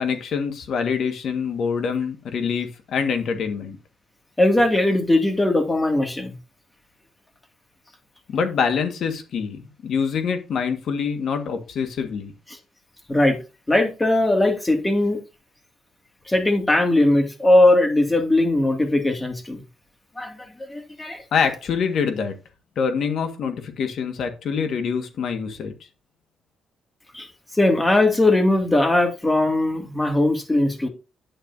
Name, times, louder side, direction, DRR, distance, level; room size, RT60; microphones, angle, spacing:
voice 1, 0.0-3.8 8.3-12.3 21.3-22.3 22.8-25.7, left 6 dB, 65° left, 1.7 m, -25 dB
voice 2, 4.4-6.3 13.1-13.4 13.7-15.2 16.3-19.6 20.2-20.3 20.7-21.2 27.1-27.3 27.5-30.9, left 1 dB, 15° left, 2.4 m, -19 dB
9.7 x 9.1 x 2.8 m
cardioid pair, 90°, 0 cm